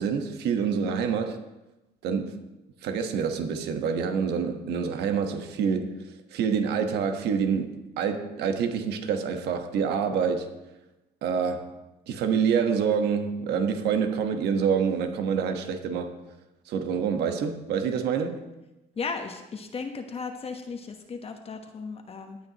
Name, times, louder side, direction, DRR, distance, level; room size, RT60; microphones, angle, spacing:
voice 1, 0.0-1.4 2.0-2.4 2.8-10.5 11.2-11.7 12.1-16.1 16.7-18.5, right 6 dB, 80° right, 1.3 m, -27 dB
voice 2, 19.0-22.4, left 4 dB, 35° left, 1.1 m, -35 dB
18.5 x 8.5 x 3.0 m
cardioid pair, 110°, 17 cm